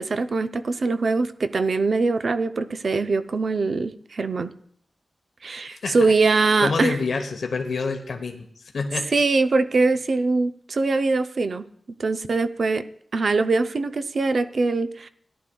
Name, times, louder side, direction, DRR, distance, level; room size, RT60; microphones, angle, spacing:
voice 1, 0.0-4.5 5.4-7.0 9.1-11.7 12.0-12.9 13.1-15.1, right 3 dB, 50° right, 10 dB, 0.5 m, -22 dB
voice 2, 5.7-6.1 6.6-9.1, left 4 dB, 70° left, 5 dB, 0.9 m, -28 dB
18.0 x 11.0 x 2.3 m, 0.64 s
wide cardioid pair, 150°, 0 cm